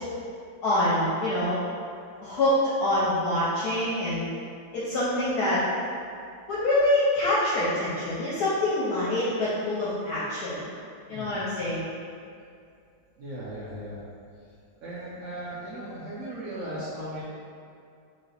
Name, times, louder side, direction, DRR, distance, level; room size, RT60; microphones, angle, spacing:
voice 1, 0.6-1.6 2.2-4.3 4.7-5.6 6.5-10.7 11.1-11.9, left 1 dB, 70° left, -8 dB, 1.0 m, -25 dB
voice 2, 11.1-11.4 13.2-14.0 14.4-14.5 14.8-17.2, right 1 dB, 80° right, -10 dB, 0.7 m, -37 dB
3.1 x 2.9 x 4.0 m, 2.4 s
omnidirectional pair, 2.2 m